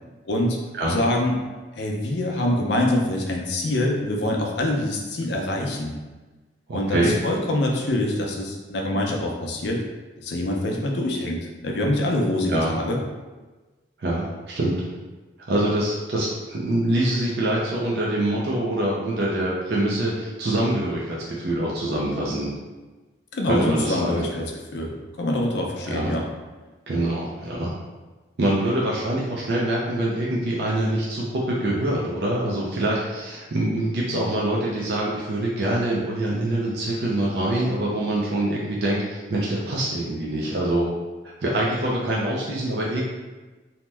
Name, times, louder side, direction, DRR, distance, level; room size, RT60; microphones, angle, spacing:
voice 1, 0.2-0.6 0.9-1.4 1.7-6.0 6.7-9.8 10.2-13.0 23.3-26.3, left 1 dB, 65° left, 0 dB, 0.5 m, -25 dB
voice 2, 6.7-7.2 12.5-12.7 14.0-14.8 15.5-22.5 23.4-24.2 25.9-26.1 26.9-27.7 28.4-40.9 41.4-43.1, right 1 dB, 60° right, -5 dB, 0.4 m, -24 dB
2.8 x 2.1 x 3.3 m, 1.2 s
head